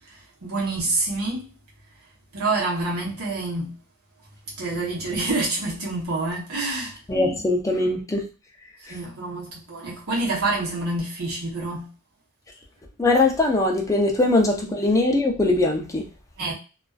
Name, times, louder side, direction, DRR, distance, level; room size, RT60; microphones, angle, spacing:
voice 1, 0.1-1.5 2.3-3.7 4.5-7.0 8.8-11.9 16.4-16.5, right 2 dB, 85° right, 0.9 m, -27 dB
voice 2, 7.1-8.2 8.9-9.0 13.0-16.1, left 2 dB, 15° left, 0.4 m, -21 dB
2.4 x 2.3 x 2.3 m
head